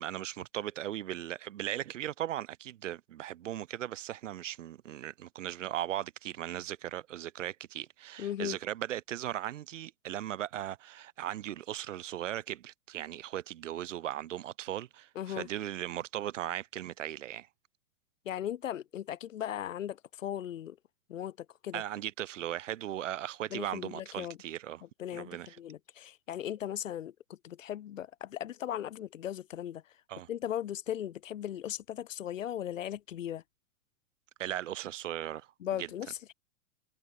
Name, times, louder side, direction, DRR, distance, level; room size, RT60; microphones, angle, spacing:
voice 1, 0.0-17.5 21.7-24.8 25.1-25.6 30.1-30.3 34.4-35.5 35.8-35.9, right 12 dB, 70° right, 7.2 m, -38 dB
voice 2, 8.2-8.6 15.2-15.5 18.3-20.8 21.1-21.4 21.6-21.8 23.5-24.4 25.0-27.1 27.4-29.8 30.3-33.4 35.6-36.3, left 11 dB, 85° left, 1.8 m, -37 dB
hypercardioid pair, 140°, 38 cm